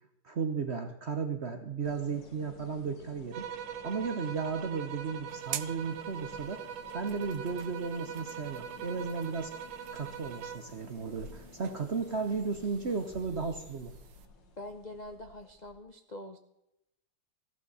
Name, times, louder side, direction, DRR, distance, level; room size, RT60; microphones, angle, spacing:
voice 1, 0.2-3.5 3.8-6.6 6.9-9.5 9.9-13.9, right 5 dB, 45° right, 7 dB, 0.9 m, -34 dB
sound 1, 1.8-15.8, left 3 dB, 70° left, 2.3 m, -53 dB
sound 2, 3.3-10.8, right 8 dB, 90° right, 1.6 m, -42 dB
sound 3, 5.3-14.3, right 11 dB, 65° right, 1.1 m, -48 dB
voice 2, 14.6-16.4, left 1 dB, 40° left, 5 dB, 0.6 m, -44 dB
15.5 x 12.0 x 4.2 m, 0.87 s
omnidirectional pair, 2.1 m